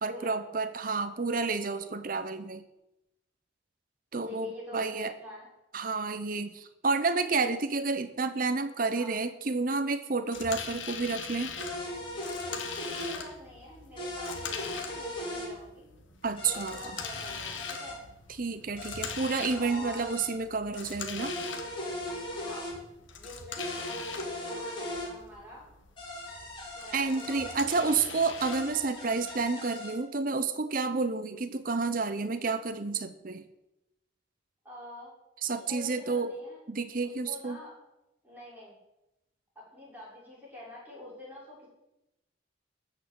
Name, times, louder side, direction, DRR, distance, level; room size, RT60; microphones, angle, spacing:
voice 1, 0.0-2.6 4.1-5.1 5.7-11.5 16.2-16.8 18.4-21.3 26.9-33.4 35.4-36.3 36.7-37.6, right 4 dB, 45° right, 10 dB, 0.8 m, -30 dB
voice 2, 4.2-5.5 8.9-9.2 12.9-15.9 16.4-18.0 19.5-20.1 22.3-22.7 23.2-25.7 26.8-28.0 34.6-35.1 35.5-36.6 37.0-37.7 38.2-38.8 39.5-41.7, left 1 dB, 10° right, -6 dB, 6.2 m, -46 dB
sound 1, 10.3-29.4, left 6 dB, 80° left, 1.7 m, -43 dB
sound 2, 11.6-13.2 14.0-15.5 16.4-18.0 18.8-20.4 21.2-22.7 23.6-25.1 26.0-27.6 28.4-30.0, left 1 dB, 25° left, 3.4 m, -38 dB
13.5 x 6.1 x 8.7 m, 0.92 s
head